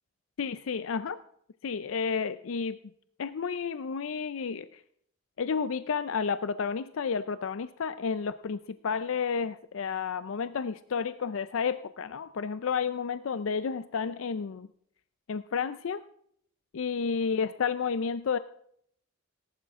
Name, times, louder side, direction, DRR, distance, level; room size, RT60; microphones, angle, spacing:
voice 1, 0.4-1.2 1.6-2.8 3.2-4.8 5.4-14.7 15.3-16.0 16.7-18.4, left 6 dB, 70° left, 13 dB, 0.5 m, -31 dB
18.5 x 11.5 x 3.6 m, 0.68 s
head